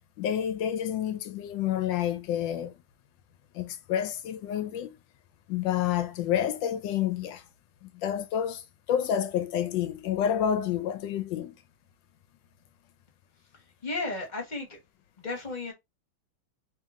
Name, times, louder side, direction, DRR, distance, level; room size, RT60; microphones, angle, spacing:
voice 1, 0.2-2.7 3.5-4.9 5.5-7.4 7.8-11.5, left 10 dB, 75° left, 1.2 m, -29 dB
voice 2, 13.8-14.8 15.2-15.7, left 2 dB, 25° left, 1.1 m, -33 dB
3.3 x 2.8 x 3.6 m
omnidirectional pair, 2.2 m